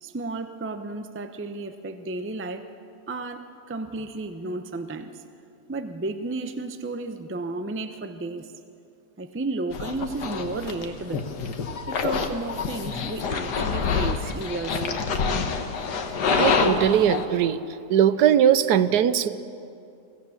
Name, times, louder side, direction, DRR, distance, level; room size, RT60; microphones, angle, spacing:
voice 1, 0.0-2.7 3.1-5.2 5.7-8.5 9.2-11.3 11.9-15.0, right 2 dB, 15° right, 8 dB, 0.4 m, -33 dB
sound 1, 9.7-17.2, left 5 dB, 80° left, 1.8 m, -27 dB
voice 2, 16.3-17.6 17.9-19.3, right 9 dB, 75° right, 14 dB, 1.2 m, -20 dB
24.5 x 15.5 x 7.2 m, 2.5 s
omnidirectional pair, 1.8 m